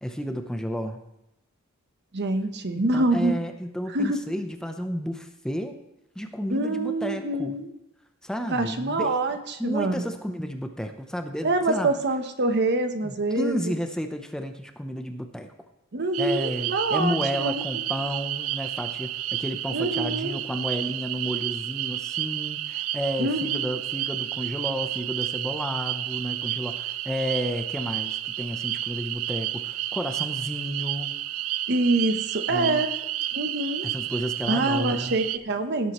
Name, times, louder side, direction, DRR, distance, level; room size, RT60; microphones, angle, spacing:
voice 1, 0.0-1.0 2.7-5.8 6.2-7.5 8.2-9.2 9.6-11.9 13.0-15.5 16.2-31.1 32.5-32.8 33.8-35.1, equal, 5° left, 5 dB, 0.7 m, -32 dB
voice 2, 2.1-3.4 3.9-4.2 6.5-7.7 8.5-10.0 11.4-13.7 15.9-17.6 19.7-20.4 23.2-23.7 31.7-32.9 33.3-33.9 34.5-35.9, right 2 dB, 55° right, 8 dB, 1.0 m, -25 dB
sound 1, 16.1-35.4, right 13 dB, 80° right, 0.4 m, -31 dB
17.5 x 8.3 x 3.1 m, 0.86 s
head